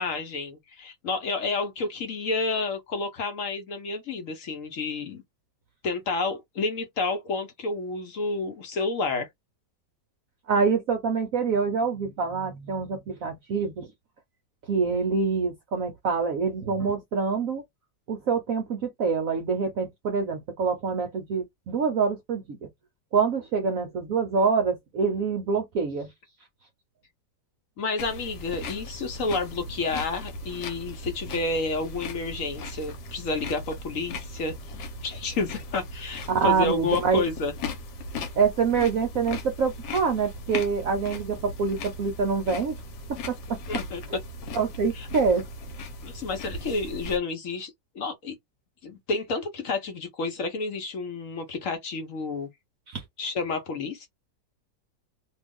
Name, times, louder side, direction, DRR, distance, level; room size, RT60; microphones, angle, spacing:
voice 1, 0.0-5.2 5.8-9.3 27.8-34.5 35.0-37.5 43.7-44.0 44.9-45.1 46.0-48.4 48.8-52.5 53.2-54.1, left 3 dB, 55° left, 1.1 m, -30 dB
voice 2, 10.5-13.9 14.7-17.6 18.1-22.6 23.1-26.1 36.3-37.2 38.4-42.8 43.3-43.4 44.5-45.4 52.9-53.0, right 5 dB, 60° right, 1.0 m, -25 dB
sound 1, 28.0-47.2, left 2 dB, 70° left, 1.4 m, -38 dB
3.0 x 2.4 x 3.5 m
omnidirectional pair, 1.9 m